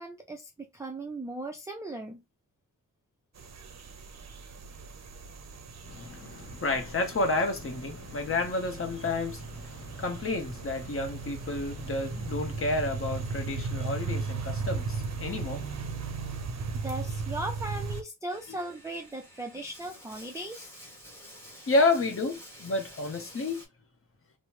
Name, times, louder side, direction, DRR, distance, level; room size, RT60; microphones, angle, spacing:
voice 1, 0.0-2.2 16.7-20.7, right 2 dB, 10° right, 0.4 m, -38 dB
sound 1, 3.3-18.0, right 4 dB, 50° right, 0.6 m, -37 dB
voice 2, 5.8-16.0 21.7-23.6, left 2 dB, 40° left, 0.8 m, -30 dB
Bathtub (filling or washing), 18.3-23.7, equal, 5° left, 1.3 m, -50 dB
3.0 x 2.0 x 3.0 m
wide cardioid pair, 115°, 35 cm